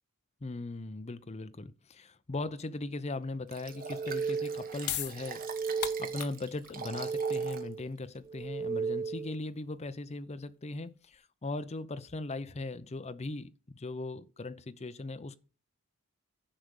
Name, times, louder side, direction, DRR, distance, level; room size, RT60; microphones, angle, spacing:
voice 1, 0.4-5.4 6.0-15.3, left 2 dB, 30° left, 0.6 m, -39 dB
Liquid, 3.5-7.7 8.2-8.3, right 6 dB, 40° right, 1.2 m, -44 dB
sound 1, 3.7-4.9 5.2-6.4 6.7-7.9 8.3-9.4, right 5 dB, 15° right, 0.7 m, -35 dB
sound 2, 4.8-11.2, left 11 dB, 85° left, 0.9 m, -42 dB
10.0 x 5.1 x 6.3 m
head